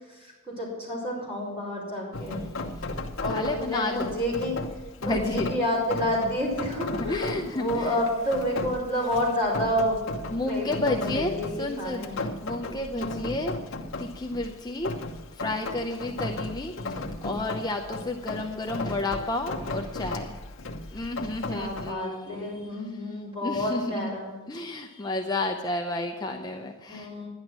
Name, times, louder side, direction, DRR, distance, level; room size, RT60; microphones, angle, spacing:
voice 1, 0.1-2.5 3.2-4.6 5.0-10.0 10.4-12.2 12.9-13.3 21.4-24.3 26.9-27.3, left 1 dB, 25° right, -4 dB, 4.9 m, -29 dB
Rain, 2.1-21.9, left 2 dB, 60° left, 1.0 m, -35 dB
voice 2, 3.3-4.1 5.0-5.5 6.9-8.0 10.3-13.5 14.0-14.9 15.3-20.4 20.9-24.1 24.5-27.1, left 2 dB, 20° left, 2 dB, 0.6 m, -31 dB
11.0 x 10.5 x 6.2 m, 1.2 s
head